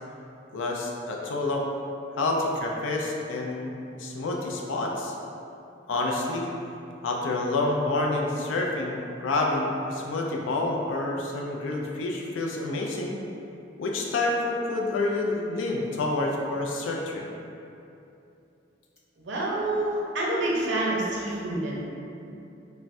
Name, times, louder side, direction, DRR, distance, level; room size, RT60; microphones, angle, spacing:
voice 1, 0.5-1.6 2.2-3.7 4.0-5.1 5.9-6.5 7.0-13.2 13.8-17.2, left 2 dB, 85° left, 0 dB, 0.4 m, -28 dB
voice 2, 19.2-21.8, right 1 dB, 65° right, -4 dB, 0.5 m, -27 dB
3.3 x 2.1 x 2.6 m, 2.7 s
head